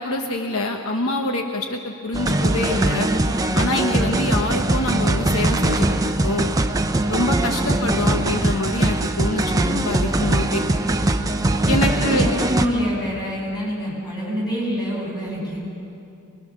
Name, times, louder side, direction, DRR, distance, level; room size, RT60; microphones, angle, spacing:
voice 1, 0.0-3.1 3.5-6.5 7.1-10.6 11.7-12.3, left 2 dB, 70° left, 3 dB, 1.2 m, -25 dB
sound 1, 2.1-12.7, right 1 dB, 15° right, 0.7 m, -21 dB
voice 2, 11.5-15.6, equal, 20° left, -4 dB, 7.8 m, -26 dB
24.5 x 21.5 x 6.3 m, 2.7 s
head